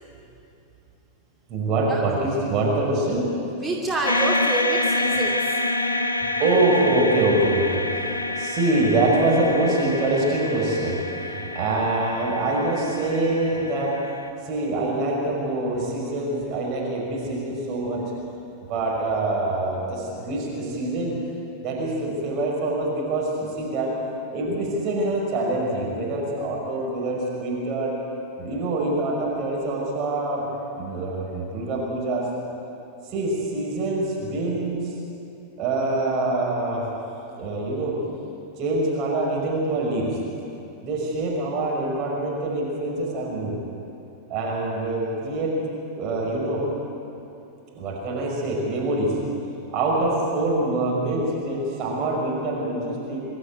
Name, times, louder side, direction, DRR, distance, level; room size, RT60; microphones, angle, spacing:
voice 1, 1.5-3.4 6.4-7.9 8.4-14.0 14.4-18.1 18.7-21.2 21.6-24.0 24.3-28.0 28.4-30.5 30.8-32.3 33.1-34.9 35.6-36.9 37.3-38.0 38.6-40.2 40.8-43.6 44.3-45.6 45.9-46.7 47.7-49.2 49.7-53.2, right 2 dB, 35° right, -3 dB, 5.4 m, -25 dB
voice 2, 3.6-5.7, right 2 dB, 15° right, -2 dB, 2.5 m, -27 dB
sound 1, 4.1-14.3, left 2 dB, 80° left, 0.9 m, -27 dB
24.5 x 13.0 x 9.1 m, 2.8 s
figure-of-eight pair, 90°, 0 cm